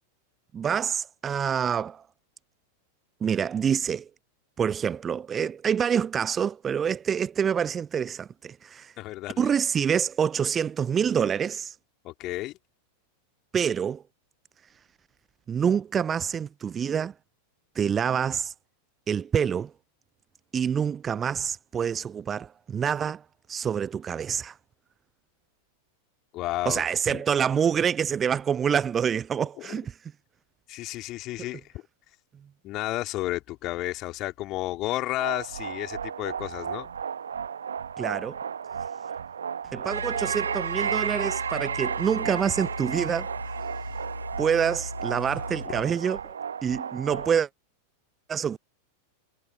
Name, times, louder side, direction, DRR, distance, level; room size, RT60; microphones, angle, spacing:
voice 1, 0.5-2.0 3.2-4.1 4.6-8.9 9.4-11.8 13.5-14.0 15.5-17.1 17.8-18.5 19.1-19.7 20.5-23.2 23.5-24.6 26.7-30.0 38.0-38.4 39.7-43.3 44.4-46.3 46.6-47.5 48.3-48.6, right 7 dB, 20° right, 0.4 m, -26 dB
voice 2, 9.0-9.5 12.0-12.6 26.3-27.2 29.6-29.7 30.7-31.7 32.6-36.9, left 17 dB, 35° left, 3.6 m, -32 dB
sound 1, 35.2-47.4, right 7 dB, 70° right, 1.1 m, -33 dB
Engine, 39.9-45.7, equal, 90° left, 3.2 m, -37 dB
figure-of-eight pair, 90°, 0 cm